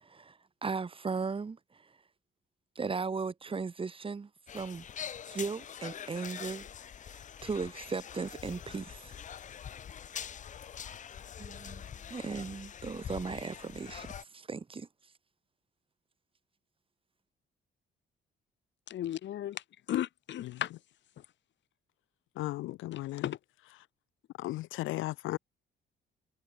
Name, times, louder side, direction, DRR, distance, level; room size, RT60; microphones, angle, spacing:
voice 1, 0.0-1.6 2.7-6.7 7.1-9.2 11.4-11.8 12.1-14.9, right 4 dB, 25° right, 1.0 m, -37 dB
sound 1, 4.5-14.2, left 8 dB, 40° left, 0.5 m, -44 dB
voice 2, 18.9-20.7 21.2-21.3 22.9-23.4, left 12 dB, 65° left, 0.9 m, -35 dB
voice 3, 20.4-20.8 22.4-23.4 23.7-23.8 24.4-25.4, left 17 dB, 85° left, 0.6 m, -36 dB
cardioid pair, 90°, 20 cm